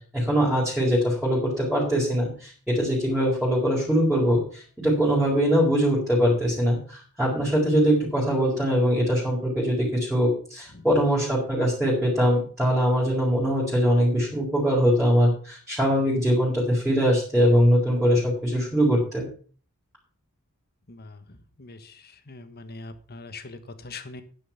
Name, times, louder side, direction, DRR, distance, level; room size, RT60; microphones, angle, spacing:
voice 1, 0.1-19.2, equal, ahead, -6 dB, 4.2 m, -22 dB
voice 2, 21.6-24.2, left 3 dB, 45° left, 11 dB, 1.5 m, -42 dB
10.5 x 9.6 x 5.8 m, 0.42 s
head